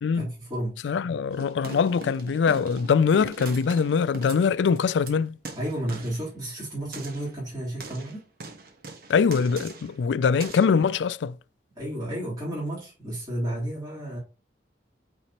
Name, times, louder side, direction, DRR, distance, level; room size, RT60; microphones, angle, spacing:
voice 1, 0.1-0.8 5.5-8.3 11.7-14.2, right 1 dB, 25° right, 3.5 m, -32 dB
voice 2, 0.8-5.4 9.1-11.3, left 6 dB, 90° left, 0.4 m, -23 dB
sound 1, 1.3-5.1 5.5-6.2 6.9-7.3 7.8-10.0 10.4-10.7, right 3 dB, 60° right, 1.3 m, -41 dB
8.7 x 4.2 x 3.0 m
head